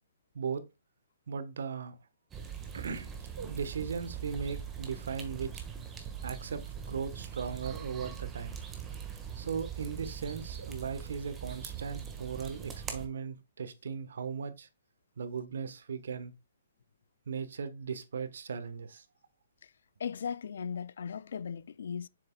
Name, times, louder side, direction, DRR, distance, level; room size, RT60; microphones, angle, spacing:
voice 1, 1.3-2.0 2.7-3.1 3.4-5.6 6.2-8.5 9.4-14.7 15.2-16.3 17.3-19.0, right 6 dB, 70° right, 1.1 m, -37 dB
sound 1, 2.3-13.1, right 8 dB, 15° right, 1.4 m, -42 dB
voice 2, 20.0-22.1, left 7 dB, 65° left, 0.3 m, -37 dB
7.5 x 6.4 x 2.2 m
hypercardioid pair, 130°, 0 cm